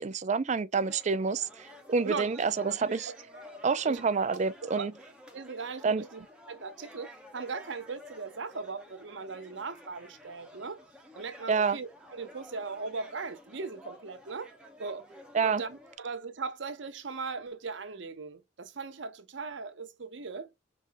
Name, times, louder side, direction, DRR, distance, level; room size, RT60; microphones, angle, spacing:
voice 1, 0.0-3.1 3.6-4.9 5.8-6.0 11.5-11.8 15.3-15.6, right 5 dB, 35° right, 0.4 m, -28 dB
sound 1, 0.7-16.0, left 1 dB, 5° right, 1.0 m, -52 dB
voice 2, 2.0-2.8 3.0-3.2 3.9-4.0 4.3-4.4 4.7-4.9 5.3-10.8 11.1-14.5 14.8-15.0 15.4-20.5, right 4 dB, 70° right, 0.8 m, -39 dB
5.1 x 3.3 x 2.6 m
head